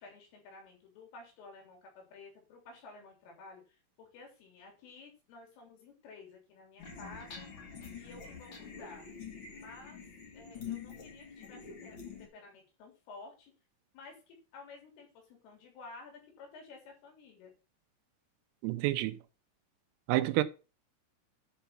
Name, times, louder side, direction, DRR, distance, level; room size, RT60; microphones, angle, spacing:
voice 1, 0.0-7.5 8.0-9.1 9.5-10.0 10.3-13.5 13.9-17.5, left 3 dB, 70° left, 6.0 m, -53 dB
sound 1, 6.8-12.3, left 6 dB, 90° left, 1.0 m, -46 dB
voice 2, 18.6-19.2 20.1-20.4, right 16 dB, 85° right, 3.5 m, -28 dB
11.5 x 5.6 x 5.9 m
omnidirectional pair, 6.0 m